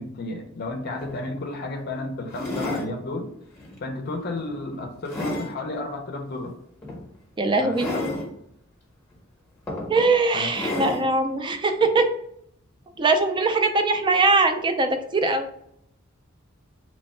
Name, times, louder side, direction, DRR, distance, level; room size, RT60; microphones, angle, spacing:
voice 1, 0.0-3.3 3.8-6.5 7.6-8.1 10.3-10.5, left 2 dB, 50° left, 3 dB, 0.5 m, -32 dB
sound 1, 0.6-0.7 1.0-1.2 2.3-2.9 3.6-3.8 4.3-5.5 6.8-7.0 7.7-8.3 9.1-9.2 9.7-10.1 10.5-11.1 11.8-11.9, left 2 dB, 10° left, 0.8 m, -31 dB
voice 2, 7.4-7.9 9.9-12.1 13.0-15.5, right 3 dB, 20° right, 6 dB, 0.3 m, -21 dB
3.0 x 2.2 x 4.1 m, 0.72 s
head